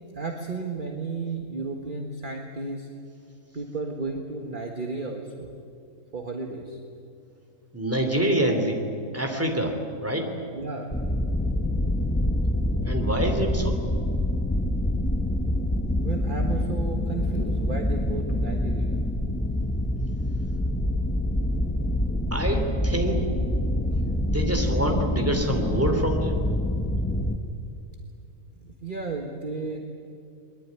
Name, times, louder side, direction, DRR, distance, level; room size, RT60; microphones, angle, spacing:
voice 1, 0.1-2.9 3.5-5.5 6.1-6.8 10.5-10.9 16.0-19.0 28.6-29.8, right 3 dB, 35° right, 2 dB, 1.7 m, -33 dB
voice 2, 7.7-8.8 9.1-9.7 10.0-10.3 12.8-13.8 22.3-23.2 24.1-26.4, right 1 dB, 10° right, 4 dB, 3.2 m, -26 dB
sound 1, 10.9-27.4, left 1 dB, 10° left, 0.9 m, -26 dB
22.0 x 22.0 x 9.6 m, 2.5 s
omnidirectional pair, 1.5 m